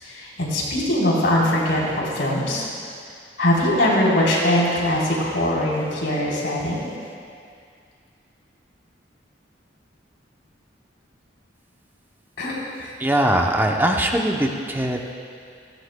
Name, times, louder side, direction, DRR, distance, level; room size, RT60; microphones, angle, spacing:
voice 1, 0.0-2.7 3.4-6.9 12.4-12.5 12.8-12.9, left 1 dB, 85° left, -5 dB, 3.6 m, -21 dB
voice 2, 13.0-15.1, right 1 dB, 10° right, 1 dB, 0.7 m, -21 dB
18.0 x 16.5 x 2.2 m, 2.4 s
head